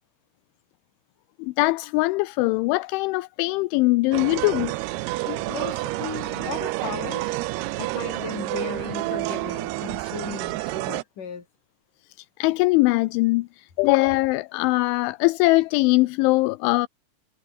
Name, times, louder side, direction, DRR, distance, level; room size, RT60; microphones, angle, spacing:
voice 1, 1.4-4.7 5.3-5.4 12.4-16.9, left 22 dB, 85° left, 3.1 m, -21 dB
sound 1, 4.1-11.0, right 19 dB, 80° right, 2.4 m, -29 dB
voice 2, 5.2-7.4 7.8-11.5, left 6 dB, 45° left, 5.6 m, -36 dB
omnidirectional pair, 5.4 m